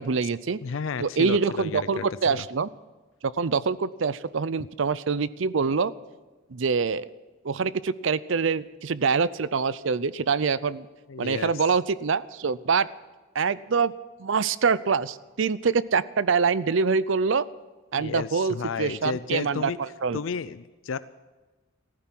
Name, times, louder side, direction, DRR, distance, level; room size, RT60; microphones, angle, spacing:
voice 1, 0.0-0.6 1.0-2.7 3.2-5.9 6.5-7.1 7.4-10.9 11.2-12.9 13.3-13.9 14.2-17.5 17.9-20.2, right 5 dB, 65° right, 17 dB, 0.5 m, -25 dB
voice 2, 0.6-2.4 11.1-11.7 17.9-19.8 20.1-21.0, left 5 dB, 70° left, 15 dB, 0.5 m, -32 dB
15.0 x 14.5 x 6.0 m, 1.3 s
head